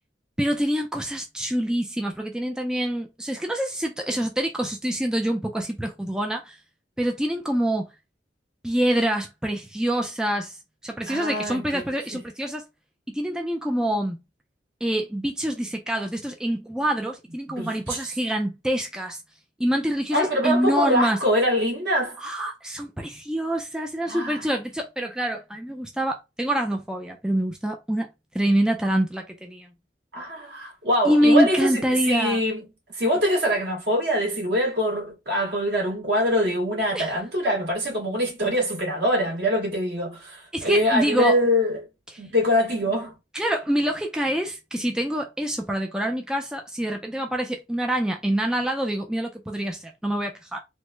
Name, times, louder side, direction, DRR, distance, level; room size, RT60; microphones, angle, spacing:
voice 1, 0.4-6.6 7.0-7.9 8.6-10.6 10.8-12.6 13.1-14.2 14.8-19.2 19.6-21.2 22.2-28.1 28.3-29.7 31.0-32.4 36.9-37.1 40.5-41.4 42.1-42.2 43.3-50.6, equal, 5° right, 0.3 m, -26 dB
voice 2, 11.1-11.8 12.1-12.2 17.6-18.1 20.1-22.2 24.1-24.5 30.1-32.6 32.9-41.8 42.2-43.1, equal, 65° right, 1.8 m, -24 dB
3.2 x 2.0 x 3.0 m
head